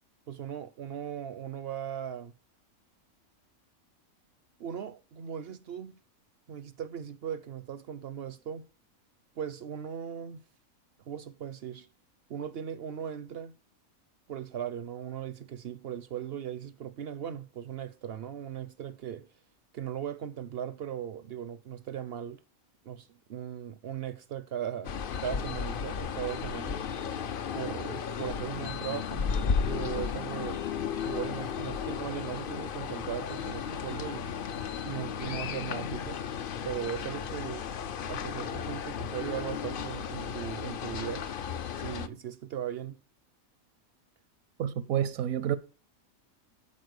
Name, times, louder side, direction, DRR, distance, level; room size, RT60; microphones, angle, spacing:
voice 1, 0.3-2.3 4.6-6.0 6.5-8.6 9.4-10.4 11.1-11.9 12.3-13.5 14.3-19.3 19.7-22.4 22.8-24.9 25.2-26.8 27.5-30.7 31.0-34.3 34.8-36.2 36.6-37.7 38.0-41.3 41.8-43.0, right 9 dB, 60° right, 0.7 m, -38 dB
sound 1, 24.8-42.1, left 7 dB, 55° left, 0.6 m, -34 dB
voice 2, 44.6-45.6, right 10 dB, 80° right, 1.1 m, -29 dB
12.5 x 4.3 x 6.5 m
omnidirectional pair, 1.5 m